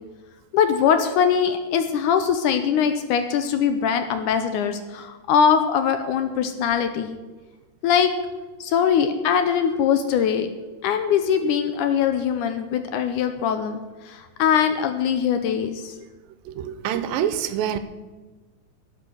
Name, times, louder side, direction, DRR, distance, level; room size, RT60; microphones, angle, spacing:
voice 1, 0.5-7.2 7.8-8.1 8.6-10.5 10.8-16.0, left 7 dB, 75° left, 8 dB, 2.0 m, -22 dB
voice 2, 16.5-17.8, right 10 dB, 85° right, 12 dB, 2.4 m, -26 dB
12.5 x 8.5 x 6.8 m, 1.3 s
omnidirectional pair, 4.1 m